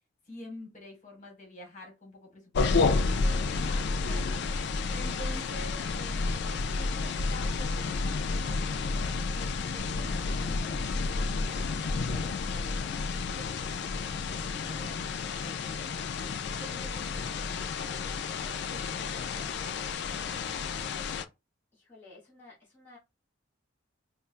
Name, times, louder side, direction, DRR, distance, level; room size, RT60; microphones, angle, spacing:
voice 1, 0.3-9.1 9.7-16.3 16.6-20.5, left 1 dB, 40° left, 1.6 m, -49 dB
sound 1, 2.6-21.3, left 4 dB, 55° left, 0.4 m, -31 dB
voice 2, 21.7-23.0, left 3 dB, 10° left, 1.2 m, -54 dB
4.3 x 2.2 x 2.4 m
head